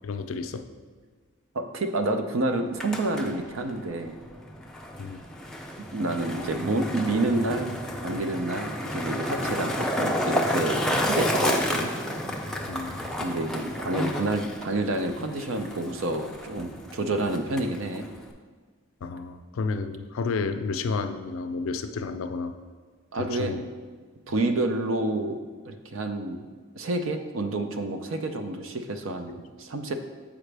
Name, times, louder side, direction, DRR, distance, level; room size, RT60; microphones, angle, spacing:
voice 1, 0.0-0.7 5.0-5.2 9.4-9.6 12.7-13.0 19.0-22.5 23.1-23.7 29.3-29.4, left 4 dB, 75° left, 9 dB, 0.4 m, -31 dB
voice 2, 1.5-4.2 5.9-11.9 13.2-18.1 23.1-23.6 24.3-25.4 25.7-26.4 26.7-29.9, right 2 dB, 65° right, 6 dB, 0.5 m, -29 dB
Skateboard, 2.6-18.3, left 1 dB, 5° left, 0.3 m, -31 dB
7.2 x 5.0 x 3.3 m, 1.5 s
head